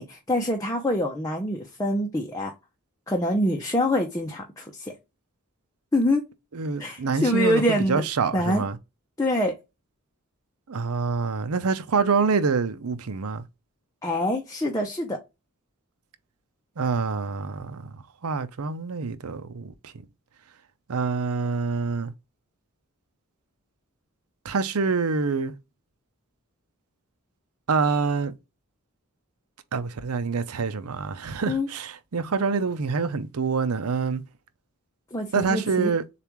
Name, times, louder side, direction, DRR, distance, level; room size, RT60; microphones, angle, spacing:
voice 1, 0.0-2.5 3.1-4.9 5.9-6.2 6.8-8.0 8.3-8.6 9.2-9.5 14.0-15.2 31.5-31.7 35.1-35.9, left 1 dB, 15° left, 0.7 m, -25 dB
voice 2, 6.5-7.6 7.9-8.8 10.7-13.4 16.8-19.7 20.9-22.1 24.4-25.5 27.7-28.4 29.7-34.2 35.3-36.0, right 4 dB, 90° right, 0.6 m, -26 dB
6.9 x 2.5 x 3.0 m
head